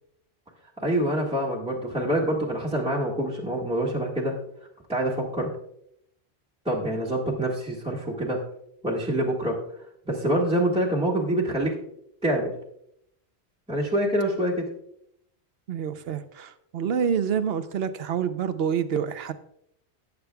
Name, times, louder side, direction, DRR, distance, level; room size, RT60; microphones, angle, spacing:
voice 1, 0.8-4.4 4.9-5.5 6.7-8.4 8.8-9.6 10.0-11.8 12.2-12.5 13.7-14.7, right 1 dB, 5° right, -4 dB, 1.8 m, -26 dB
voice 2, 15.7-19.3, right 7 dB, 65° right, 11 dB, 0.9 m, -27 dB
18.0 x 8.4 x 2.3 m, 0.73 s
omnidirectional pair, 1.1 m